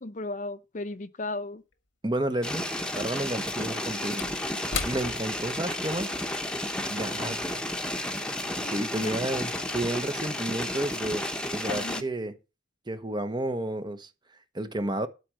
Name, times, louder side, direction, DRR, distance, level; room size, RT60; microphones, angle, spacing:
voice 1, 0.0-1.6 7.1-7.7 8.2-9.1 11.7-12.0, left 2 dB, 40° left, 0.8 m, -37 dB
Slam / Wood, 1.7-1.8 3.3-8.0 8.3-8.5, left 6 dB, 90° left, 1.4 m, -40 dB
voice 2, 2.0-2.7 2.9-4.2 4.9-6.1 6.9-7.6 8.6-11.3 11.5-12.4 12.9-14.1 14.5-15.1, right 1 dB, 25° right, 1.0 m, -31 dB
sound 1, 2.4-12.0, left 1 dB, 5° left, 1.1 m, -32 dB
12.0 x 4.9 x 7.6 m
head